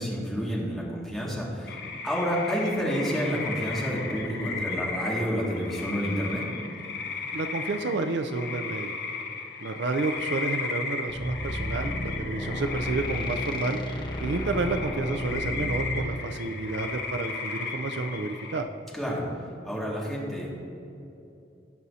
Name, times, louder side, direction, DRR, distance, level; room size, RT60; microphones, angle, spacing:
voice 1, 0.0-6.4 18.9-19.3 19.6-20.5, equal, ahead, -6 dB, 2.0 m, -29 dB
sound 1, 1.7-18.6, left 4 dB, 60° left, 0.9 m, -35 dB
voice 2, 7.3-9.0 9.6-13.8 14.2-18.7, right 3 dB, 65° right, 7 dB, 0.5 m, -30 dB
sound 2, 11.1-16.2, equal, 25° left, 0.8 m, -33 dB
18.0 x 6.1 x 2.8 m, 2.7 s
head